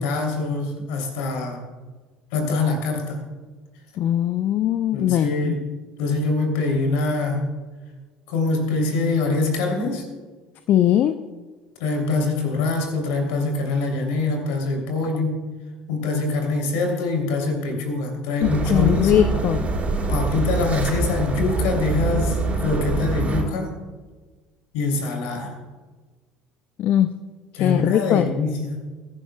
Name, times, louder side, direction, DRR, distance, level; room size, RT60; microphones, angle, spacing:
voice 1, 0.0-1.6 2.3-3.2 4.9-5.6 6.0-7.4 8.3-10.1 11.8-15.4 15.9-19.3 20.1-23.7 24.7-25.5 27.5-28.7, left 3 dB, 70° left, 2 dB, 3.1 m, -24 dB
voice 2, 4.0-5.6 10.7-11.2 18.4-19.7 26.8-27.1 27.5-28.3, left 11 dB, 50° left, 10 dB, 0.5 m, -20 dB
sound 1, 18.4-23.4, right 3 dB, 35° right, 4.1 m, -24 dB
21.5 x 11.5 x 2.3 m, 1.4 s
hypercardioid pair, 65°, 4 cm